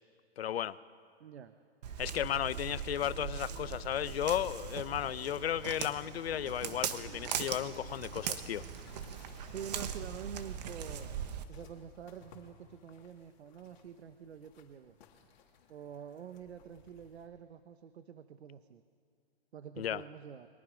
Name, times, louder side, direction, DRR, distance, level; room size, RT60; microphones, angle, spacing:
voice 1, 0.4-0.8 2.0-8.7 19.8-20.0, left 10 dB, 70° left, 0.8 m, -34 dB
voice 2, 1.2-1.5 9.5-11.1 11.5-14.9 15.7-18.8 19.5-20.5, right 8 dB, 80° right, 1.1 m, -47 dB
Walk footsteps, 1.8-11.4, right 8 dB, 40° right, 1.4 m, -40 dB
sound 1, 2.0-7.9, right 6 dB, 15° right, 0.7 m, -57 dB
sound 2, 7.7-17.3, left 6 dB, 45° left, 3.2 m, -61 dB
30.0 x 23.0 x 5.1 m
hypercardioid pair, 165°, 32 cm